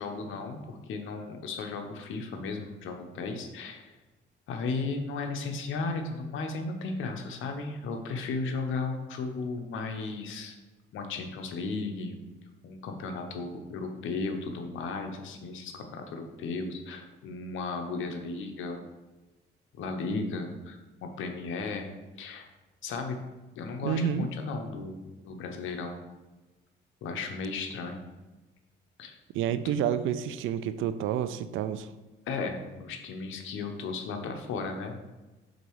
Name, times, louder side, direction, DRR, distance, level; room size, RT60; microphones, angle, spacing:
voice 1, 0.0-3.9 4.5-10.6 10.9-12.2 12.6-18.9 19.7-21.9 22.2-22.5 22.8-23.2 23.6-26.0 27.0-28.0 29.0-29.2 32.3-35.0, left 4 dB, 80° left, 5 dB, 0.9 m, -35 dB
voice 2, 23.8-24.3 29.3-31.9, right 9 dB, 80° right, 12 dB, 0.4 m, -29 dB
5.2 x 3.9 x 4.6 m, 1.2 s
cardioid pair, 90°, 20 cm